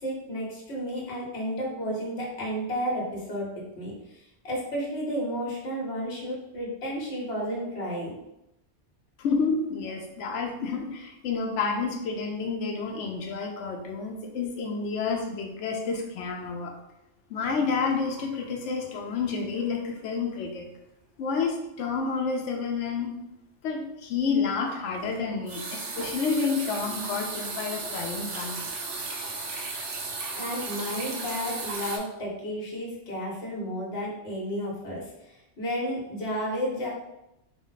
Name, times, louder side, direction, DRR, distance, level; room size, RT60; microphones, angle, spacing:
voice 1, 0.0-3.5 3.7-8.2 30.3-36.9, equal, 60° left, -4 dB, 1.4 m, -32 dB
voice 2, 9.2-16.7 17.3-20.7 21.2-23.2 23.6-28.6, left 5 dB, 75° left, 2 dB, 0.9 m, -29 dB
sound 1, 17.4-19.0 19.3-19.6 20.0-20.1 24.7-32.0, right 3 dB, 80° right, 1.1 m, -36 dB
4.8 x 2.1 x 4.0 m, 0.87 s
omnidirectional pair, 1.2 m